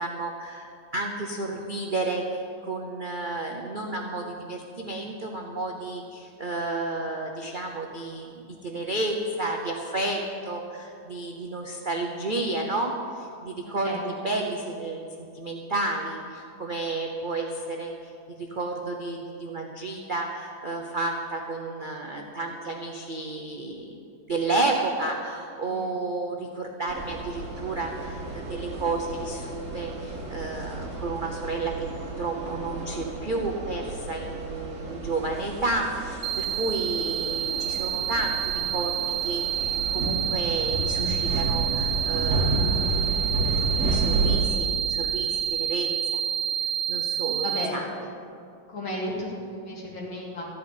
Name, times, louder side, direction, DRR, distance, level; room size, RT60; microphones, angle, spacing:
voice 1, 0.0-15.0 15.3-24.0 24.3-38.4 38.7-39.0 39.2-43.1 43.9-46.2 46.9-47.5 47.7-47.9, right 2 dB, 70° right, 1 dB, 0.4 m, -31 dB
sound 1, 26.9-44.4, right 2 dB, 40° right, 1.9 m, -31 dB
sound 2, 36.2-47.7, right 9 dB, 85° right, 1.7 m, -28 dB
voice 2, 47.4-47.8 48.7-50.4, left 1 dB, 75° left, -4 dB, 3.2 m, -34 dB
14.0 x 5.6 x 9.7 m, 2.5 s
omnidirectional pair, 2.2 m